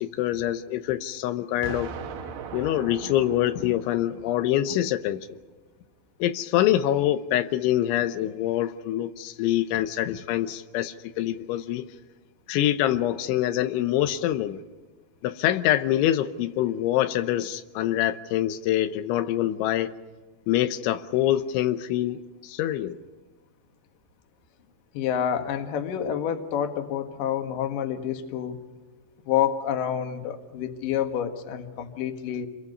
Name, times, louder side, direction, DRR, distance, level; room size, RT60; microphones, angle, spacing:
voice 1, 0.0-1.9 2.5-5.3 6.2-11.8 12.5-14.6 15.2-19.9 20.5-23.0, left 12 dB, 85° left, 10 dB, 3.3 m, -25 dB
Explosion, 1.6-4.6, right 6 dB, 65° right, 3.4 m, -39 dB
voice 2, 24.9-28.6 29.3-32.5, left 9 dB, 60° left, 7 dB, 2.8 m, -28 dB
28.0 x 23.0 x 5.5 m, 1.3 s
omnidirectional pair, 5.3 m